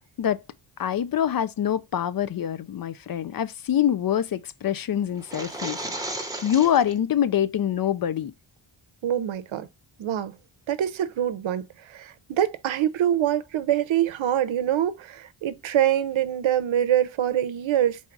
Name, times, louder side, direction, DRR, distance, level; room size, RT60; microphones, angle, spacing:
voice 1, 0.8-5.8 6.4-8.3, left 10 dB, 50° left, 0.5 m, -25 dB
sound 1, 5.2-7.0, right 1 dB, 10° right, 1.0 m, -34 dB
voice 2, 9.0-9.7 10.0-10.4 10.7-18.0, right 11 dB, 75° right, 0.7 m, -25 dB
4.1 x 2.4 x 4.6 m
cardioid pair, 90°, 47 cm